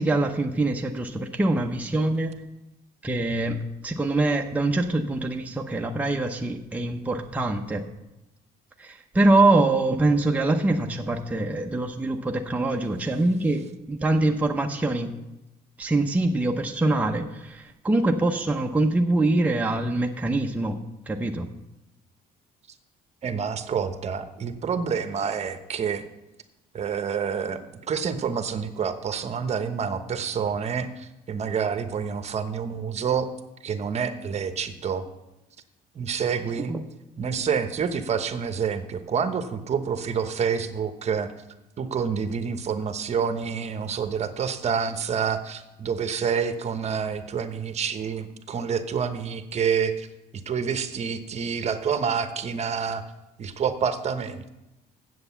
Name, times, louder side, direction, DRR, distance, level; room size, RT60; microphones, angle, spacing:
voice 1, 0.0-2.4 3.0-7.8 8.8-15.1 15.8-20.8 21.1-21.5 36.7-36.9, right 2 dB, 10° right, 2 dB, 0.8 m, -24 dB
voice 2, 23.2-26.0 26.7-33.3 33.6-35.0 35.9-36.7 37.2-41.3 41.8-50.1 50.5-53.0 53.4-54.5, right 6 dB, 40° right, 9 dB, 1.0 m, -28 dB
7.9 x 7.8 x 7.2 m, 0.96 s
cardioid pair, 110°, 17 cm